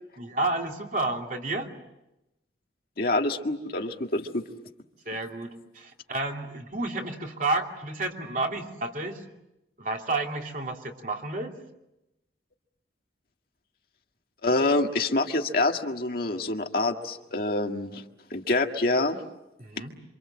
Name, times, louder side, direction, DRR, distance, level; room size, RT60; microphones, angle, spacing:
voice 1, 0.2-1.7 5.1-9.2 9.8-11.5 19.6-19.9, right 2 dB, 50° right, 1 dB, 3.0 m, -31 dB
voice 2, 3.0-4.5 14.4-18.0 18.3-19.2, left 2 dB, 55° left, 3 dB, 1.9 m, -26 dB
27.5 x 26.0 x 7.6 m, 0.91 s
head